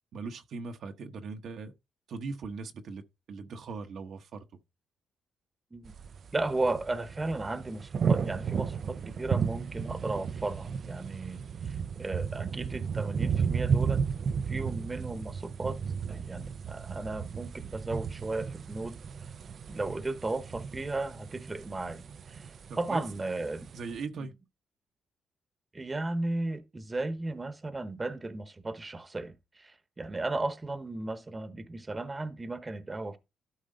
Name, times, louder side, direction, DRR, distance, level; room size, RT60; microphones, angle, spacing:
voice 1, 0.1-1.7 2.1-3.0 3.3-4.4 22.7-23.0 23.7-24.3, right 4 dB, 70° right, 1.0 m, -39 dB
sound 1, 5.9-24.0, right 6 dB, 50° right, 0.5 m, -34 dB
voice 2, 6.3-14.0 14.5-15.8 16.1-19.0 19.7-22.5 22.8-23.7 24.1-24.2 25.7-33.2, right 2 dB, 20° right, 1.0 m, -35 dB
12.5 x 5.0 x 3.8 m
cardioid pair, 105°, 0 cm